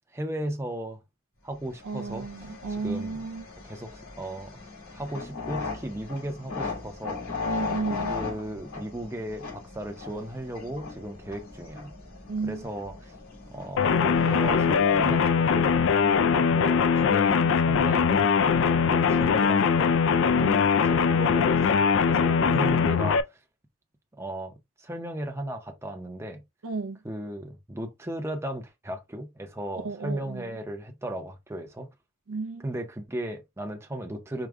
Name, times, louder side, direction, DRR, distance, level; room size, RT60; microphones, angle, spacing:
voice 1, 0.1-1.0 1.4-3.2 3.6-7.2 7.9-11.9 12.4-13.1 13.5-19.9 20.4-23.4 24.2-26.4 27.0-31.9 32.6-34.5, right 1 dB, 10° right, 0.6 m, -36 dB
sound 1, 1.7-15.5, left 4 dB, 90° left, 2.2 m, -38 dB
voice 2, 1.8-3.5 7.4-8.2 12.3-12.6 20.3-20.6 26.6-27.0 29.7-30.5 32.3-32.6, right 4 dB, 65° right, 0.4 m, -33 dB
sound 2, 13.8-23.2, left 6 dB, 55° left, 0.3 m, -22 dB
4.9 x 2.2 x 3.4 m
head